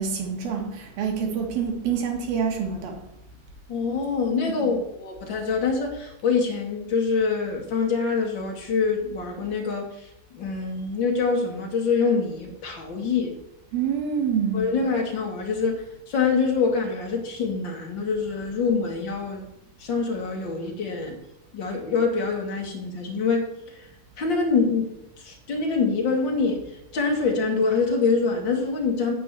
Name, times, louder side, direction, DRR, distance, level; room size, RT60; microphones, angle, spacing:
voice 1, 0.0-2.9 4.6-4.7 13.7-14.7, right 6 dB, 70° right, 3 dB, 3.4 m, -26 dB
voice 2, 3.7-9.9 10.3-13.3 14.5-19.4 19.8-21.2 21.5-23.4 24.2-24.9 25.2-26.6 26.9-29.1, left 4 dB, 40° left, 1 dB, 1.9 m, -25 dB
8.7 x 6.8 x 8.1 m, 0.86 s
omnidirectional pair, 4.5 m